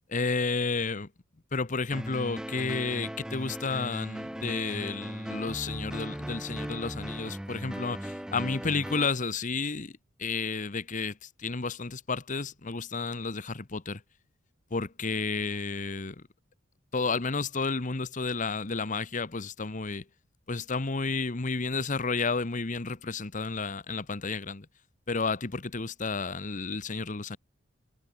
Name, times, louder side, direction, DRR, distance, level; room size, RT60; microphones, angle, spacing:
voice 1, 0.1-1.1 1.5-9.9 10.2-14.0 14.7-16.2 16.9-20.0 20.5-24.7 25.1-27.4, left 4 dB, 40° left, 1.0 m, -31 dB
sound 1, 1.9-9.1, equal, 5° right, 0.3 m, -38 dB
head